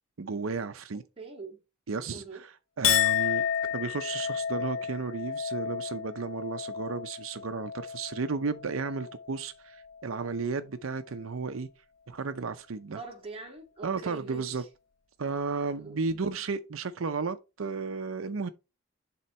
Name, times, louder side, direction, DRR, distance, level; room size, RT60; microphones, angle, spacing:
voice 1, 0.2-1.0 1.9-3.4 3.7-11.7 12.1-13.0 13.8-14.6 15.2-18.5, right 4 dB, 80° right, 0.6 m, -33 dB
voice 2, 1.2-1.6 2.1-2.4 13.0-14.7 15.8-16.1, right 3 dB, 30° right, 2.1 m, -43 dB
Chink clink, 2.8-9.4 9.8-10.4, left 9 dB, 75° left, 0.7 m, -31 dB
11.0 x 3.7 x 4.3 m
head